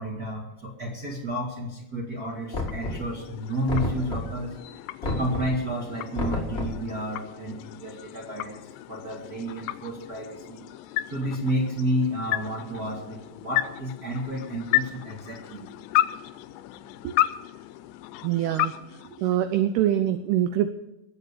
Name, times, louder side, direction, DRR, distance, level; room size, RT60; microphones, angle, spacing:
voice 1, 0.0-4.5 5.0-10.7 11.1-15.7, equal, 40° right, -3 dB, 1.3 m, -31 dB
sound 1, 2.1-19.9, left 14 dB, 85° left, 2.8 m, -33 dB
Knock, 2.5-3.3 3.7-4.5 5.0-5.6 6.1-6.9, left 2 dB, 40° left, 0.9 m, -31 dB
voice 2, 18.2-18.7 19.2-20.7, right 11 dB, 80° right, 9 dB, 2.4 m, -24 dB
20.5 x 8.1 x 6.8 m, 0.89 s
omnidirectional pair, 5.0 m